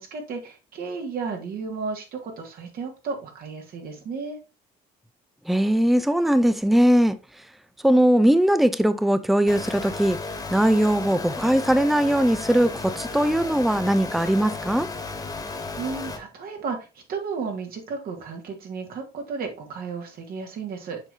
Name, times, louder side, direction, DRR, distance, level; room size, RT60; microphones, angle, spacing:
voice 1, 0.0-4.4 15.8-21.0, right 5 dB, 65° right, 2.1 m, -33 dB
voice 2, 5.5-7.2 7.8-10.2 10.5-14.9, right 1 dB, ahead, 0.5 m, -20 dB
sound 1, 9.5-16.2, left 3 dB, 20° left, 1.5 m, -34 dB
7.3 x 5.2 x 2.8 m
cardioid pair, 110°, 17 cm